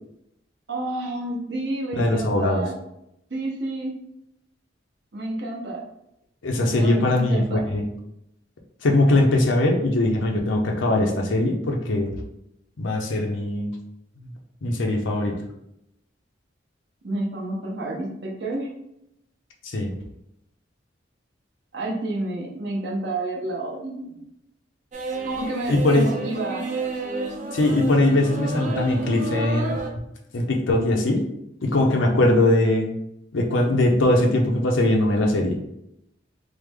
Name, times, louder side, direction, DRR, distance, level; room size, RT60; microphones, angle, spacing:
voice 1, 0.7-2.7 3.3-4.0 5.1-5.8 6.8-7.6 17.0-18.7 21.7-24.2 25.2-26.7, right 2 dB, 60° right, -2 dB, 0.8 m, -29 dB
voice 2, 1.9-2.6 6.4-7.8 8.8-12.1 12.8-13.7 14.6-15.3 19.6-19.9 25.7-26.1 27.5-29.8 30.3-31.2 31.6-32.9 33.3-35.6, left 1 dB, 85° left, 2 dB, 0.6 m, -21 dB
sound 1, 24.9-29.9, right 2 dB, 40° right, 0.4 m, -30 dB
3.2 x 2.0 x 3.4 m, 0.80 s
head